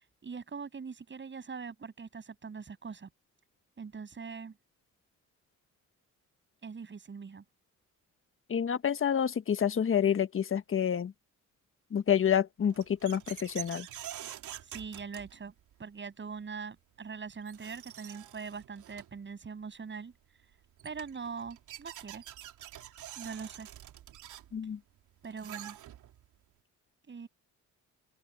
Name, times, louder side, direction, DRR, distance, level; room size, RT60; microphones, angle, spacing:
voice 1, 0.0-3.1 3.8-4.6 6.6-7.4 14.6-15.5 15.8-20.1 20.8-22.2 23.2-23.7 25.2-25.8 27.1-27.3, right 5 dB, 40° right, 7.2 m, -42 dB
voice 2, 8.5-11.1 11.9-13.9 24.5-24.8, left 8 dB, 45° left, 1.5 m, -28 dB
sound 1, 12.6-15.7 17.0-17.1 17.4-19.2 20.4-20.5 20.8-26.3, right 12 dB, 80° right, 3.3 m, -47 dB
open air
cardioid pair, 90°, 30 cm